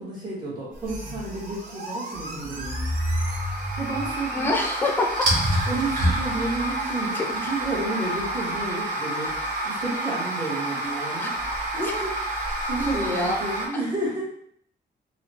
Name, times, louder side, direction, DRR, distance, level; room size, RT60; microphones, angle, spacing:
voice 1, 0.0-2.8 3.8-4.6 5.7-9.4 9.6-11.3 11.7-12.1 12.7-14.3, right 2 dB, 25° right, -7 dB, 1.4 m, -31 dB
sound 1, 0.7-13.7, right 1 dB, 55° right, 1.0 m, -28 dB
voice 2, 4.3-5.3 7.1-7.3 11.2-11.4 12.9-13.5, left 2 dB, 10° left, 2 dB, 0.4 m, -26 dB
4.0 x 2.1 x 2.9 m, 0.63 s
wide cardioid pair, 145°, 18 cm